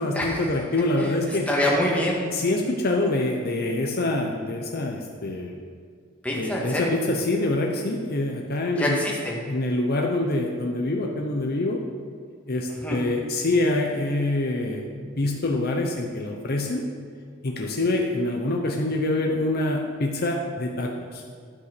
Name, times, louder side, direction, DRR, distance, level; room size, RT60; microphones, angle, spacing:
voice 1, 0.0-1.5 2.3-5.5 6.4-9.0 9.5-11.8 12.5-16.8 17.4-21.2, left 2 dB, 50° left, 1 dB, 0.8 m, -25 dB
voice 2, 1.5-2.2 6.2-7.0 8.8-9.4 12.8-13.0, left 1 dB, 5° left, -3 dB, 1.8 m, -25 dB
12.0 x 5.8 x 6.0 m, 2.1 s
head